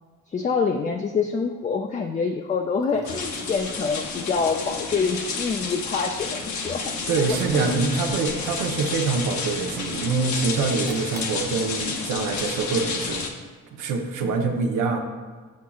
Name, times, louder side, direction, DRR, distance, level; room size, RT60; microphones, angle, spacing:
voice 1, 0.3-6.8 7.2-7.8 14.2-14.6, left 5 dB, 25° left, 4 dB, 0.4 m, -26 dB
Liquid, 2.8-7.9 8.3-9.0 9.6-10.1 10.8-11.4, right 3 dB, 35° right, 1.0 m, -45 dB
sound 1, 3.0-13.3, left 4 dB, 70° left, 0.9 m, -31 dB
voice 2, 7.1-13.3 13.7-15.0, right 4 dB, 85° right, 4 dB, 0.8 m, -25 dB
7.1 x 6.4 x 2.3 m, 1.5 s
cardioid pair, 90°, 30 cm